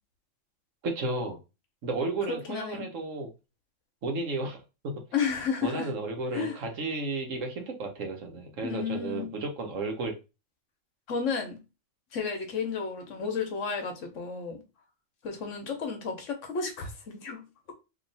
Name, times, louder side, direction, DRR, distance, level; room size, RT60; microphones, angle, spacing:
voice 1, 0.8-1.4 1.8-3.3 4.0-5.0 5.6-10.2, right 2 dB, 70° right, 1.3 m, -33 dB
voice 2, 2.3-2.9 5.1-5.9 6.3-6.6 8.6-9.3 11.1-11.6 12.1-14.6 15.2-17.4, left 5 dB, 70° left, 1.3 m, -32 dB
3.0 x 2.8 x 4.0 m
omnidirectional pair, 1.4 m